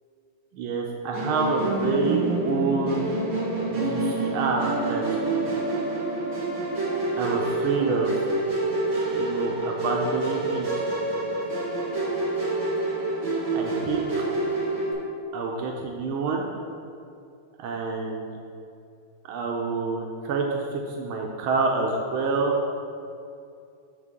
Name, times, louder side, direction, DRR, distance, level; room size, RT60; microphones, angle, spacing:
voice 1, 0.5-3.2 3.7-5.2 7.2-8.1 9.1-10.9 13.5-14.2 15.3-16.5 17.6-18.4 19.3-22.6, right 4 dB, 85° right, 0 dB, 1.5 m, -27 dB
Musical instrument, 1.1-14.9, right 2 dB, 65° right, 2.1 m, -27 dB
6.8 x 6.5 x 3.6 m, 2.5 s
omnidirectional pair, 2.3 m